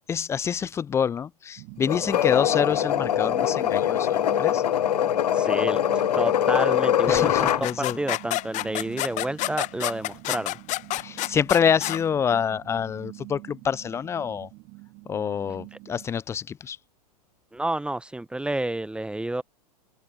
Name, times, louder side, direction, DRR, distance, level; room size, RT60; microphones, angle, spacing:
voice 1, 0.1-4.6 7.1-8.0 11.0-14.5 15.1-16.8, left 7 dB, 15° left, 0.3 m, -26 dB
sound 1, 1.6-16.1, right 26 dB, 45° right, 2.9 m, -44 dB
sound 2, 1.9-7.6, left 11 dB, 75° left, 1.1 m, -23 dB
voice 2, 5.3-5.8 6.1-10.6 17.5-19.4, right 1 dB, 5° right, 0.8 m, -30 dB
sound 3, 7.2-12.0, left 18 dB, 35° left, 1.0 m, -29 dB
open air
hypercardioid pair, 105°, 21 cm